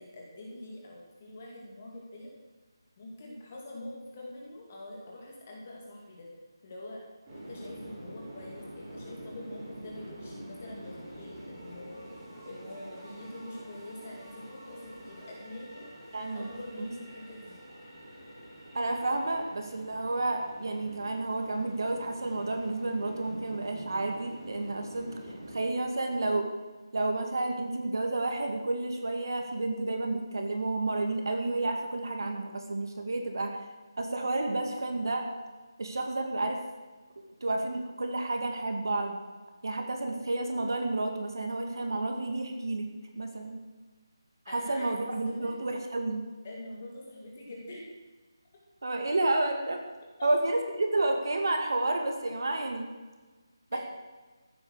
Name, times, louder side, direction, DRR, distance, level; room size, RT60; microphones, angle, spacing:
voice 1, 0.0-2.3 3.0-6.3 6.6-7.0 7.3-12.0 12.4-15.9 16.3-17.6 44.5-45.5 46.4-47.9 50.2-50.5 52.3-52.4 53.7-53.8, left 1 dB, 20° left, -2 dB, 2.4 m, -44 dB
sound 1, 7.3-25.7, right 1 dB, 15° right, 3.1 m, -46 dB
voice 2, 16.1-16.5 16.8-16.9 18.7-25.1 25.5-26.5 26.9-33.5 34.0-35.3 35.8-36.6 37.4-39.2 39.6-42.9 43.1-43.6 44.5-46.2 48.8-49.8 50.2-52.9 53.7-53.8, right 2 dB, 55° right, 4 dB, 2.2 m, -30 dB
14.5 x 8.7 x 6.5 m, 1.3 s
figure-of-eight pair, 180°, 2 cm